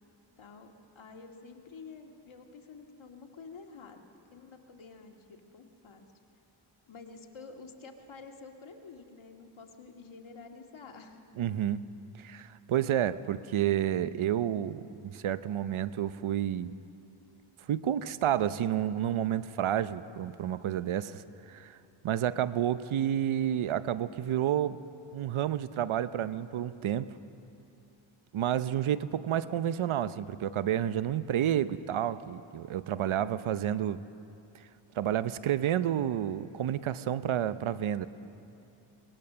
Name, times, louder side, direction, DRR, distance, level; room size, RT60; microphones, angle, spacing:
voice 1, 0.4-6.1 6.9-11.2 22.3-22.5 33.0-33.3, left 4 dB, 65° left, 3 dB, 2.2 m, -49 dB
voice 2, 11.4-11.8 12.2-16.7 17.7-21.8 22.0-24.8 25.1-27.1 28.3-34.0 34.9-38.1, right 10 dB, 70° right, 14 dB, 0.8 m, -30 dB
23.0 x 20.0 x 6.9 m, 2.7 s
cardioid pair, 45°, 50 cm